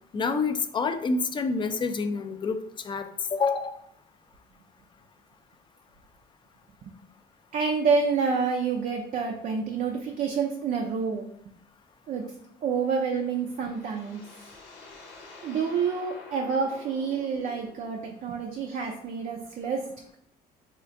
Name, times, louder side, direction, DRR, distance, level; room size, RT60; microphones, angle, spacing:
voice 1, 0.1-2.6 2.8-3.7, left 4 dB, 30° left, 7 dB, 0.3 m, -27 dB
voice 2, 7.5-11.3 12.1-12.2 12.6-14.5 15.4-19.8, right 5 dB, 50° right, 2 dB, 0.4 m, -28 dB
sound 1, 13.0-18.1, left 3 dB, 90° left, 0.8 m, -49 dB
4.3 x 2.4 x 2.5 m, 0.70 s
cardioid pair, 110°, 17 cm